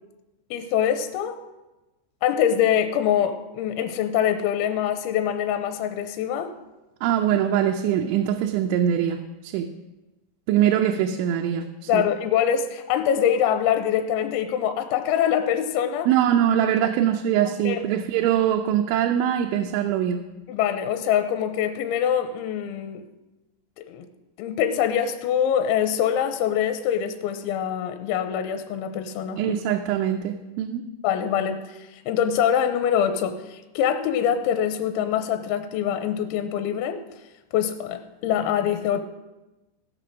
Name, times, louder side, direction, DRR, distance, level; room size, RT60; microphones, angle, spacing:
voice 1, 0.5-1.4 2.2-6.5 11.9-16.1 17.6-17.8 20.5-23.0 23.8-24.1 24.4-29.5 31.0-37.0 37.5-39.0, left 9 dB, 85° left, 8 dB, 3.0 m, -24 dB
voice 2, 7.0-9.7 10.5-12.0 16.1-20.3 29.4-30.9, right 10 dB, 85° right, 3 dB, 3.1 m, -23 dB
16.0 x 6.6 x 6.0 m, 1.1 s
omnidirectional pair, 5.6 m